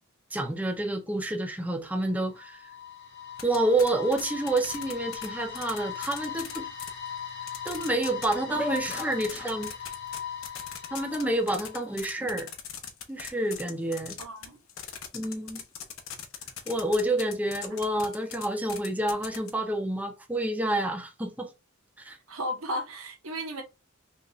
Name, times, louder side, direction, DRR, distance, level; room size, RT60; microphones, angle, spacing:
voice 1, 0.3-2.6 3.4-6.7 7.6-9.7 10.9-12.5 13.1-14.1 15.1-15.6 16.7-21.5 22.0-22.2, right 1 dB, 10° right, 0.6 m, -28 dB
sound 1, 2.1-12.2, left 8 dB, 55° left, 1.2 m, -40 dB
sound 2, 3.4-5.3 5.5-6.9 7.5-8.3 8.6-11.2 11.5-19.5, left 9 dB, 70° left, 0.8 m, -39 dB
voice 2, 14.2-14.6 17.7-17.8 22.3-23.6, equal, 85° right, 1.3 m, -34 dB
5.4 x 3.0 x 2.4 m
head